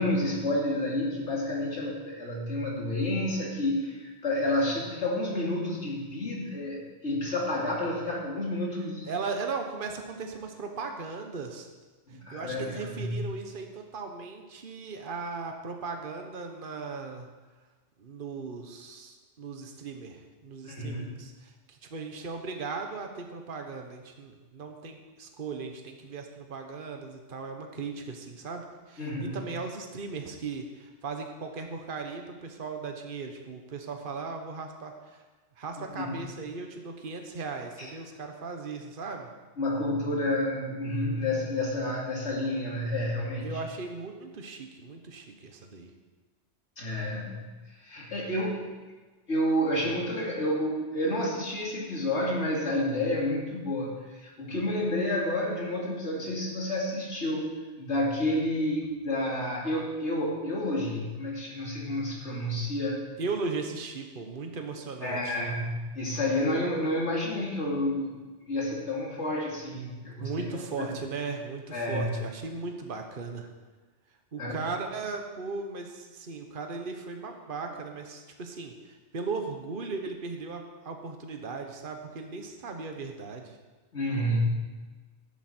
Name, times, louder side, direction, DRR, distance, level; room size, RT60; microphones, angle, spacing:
voice 1, 0.0-9.1 12.1-13.2 20.7-21.1 29.0-29.4 35.9-36.2 37.8-37.9 39.6-43.5 46.8-47.4 47.8-48.7 49.3-54.0 54.2-57.5 57.8-63.0 65.0-68.2 68.5-70.4 70.8-70.9 71.7-72.2 74.4-74.6 83.9-84.5, left 1 dB, 70° left, -4 dB, 3.0 m, -30 dB
voice 2, 9.0-11.7 12.1-17.3 18.0-35.2 35.6-39.3 43.4-45.9 63.2-65.4 70.2-73.5 74.3-83.6, right 4 dB, 50° right, 4 dB, 1.3 m, -37 dB
12.0 x 11.5 x 4.5 m, 1.3 s
omnidirectional pair, 1.2 m